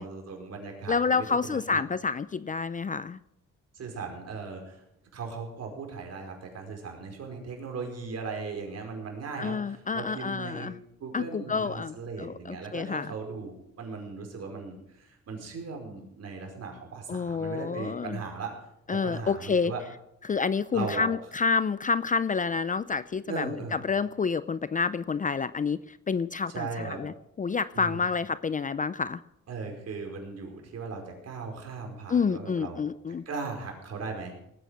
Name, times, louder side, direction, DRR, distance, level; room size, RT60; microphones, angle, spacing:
voice 1, 0.0-1.8 3.7-4.8 5.1-10.7 11.0-18.5 18.9-19.8 20.7-21.1 23.3-23.8 26.5-27.0 27.7-28.0 29.5-32.8 33.3-34.3, right 4 dB, 55° right, 2 dB, 5.2 m, -38 dB
voice 2, 0.9-3.2 9.4-10.8 11.1-13.1 17.1-18.2 18.9-19.7 20.2-29.2 32.1-33.2, left 5 dB, 25° left, 16 dB, 0.5 m, -29 dB
19.0 x 9.1 x 6.6 m, 0.80 s
cardioid pair, 90°, 30 cm